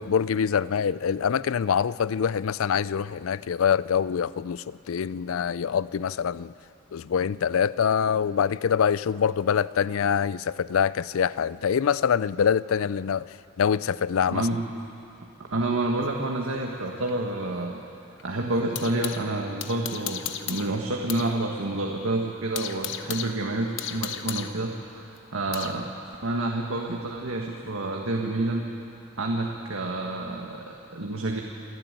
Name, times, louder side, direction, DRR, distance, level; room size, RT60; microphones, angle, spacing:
voice 1, 0.0-6.5 6.9-13.3 13.6-14.5, left 7 dB, 80° left, 18 dB, 0.4 m, -25 dB
voice 2, 14.3-14.6 15.2-17.8 18.2-25.8 26.2-28.6 29.2-31.4, right 2 dB, 75° right, 0 dB, 1.6 m, -29 dB
sound 1, 16.0-19.3 19.6-21.3 21.6-21.7 22.1-25.8, left 9 dB, 65° left, 0.9 m, -36 dB
27.5 x 12.0 x 9.1 m, 2.6 s
head